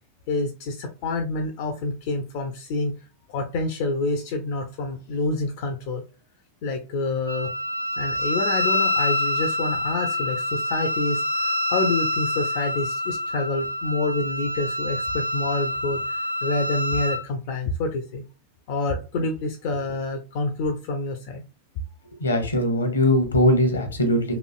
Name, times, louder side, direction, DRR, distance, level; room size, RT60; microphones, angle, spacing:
voice 1, 0.3-2.9 3.3-6.0 6.6-7.5 8.0-18.2 18.7-21.4, left 2 dB, 50° left, 5 dB, 0.3 m, -27 dB
Wind instrument woodwind instrument, 7.3-17.2, left 1 dB, 85° right, 0.4 m, -26 dB
voice 2, 22.2-24.4, left 1 dB, 75° left, 6 dB, 0.7 m, -20 dB
3.0 x 2.4 x 2.3 m, 0.34 s
figure-of-eight pair, 90°, 0 cm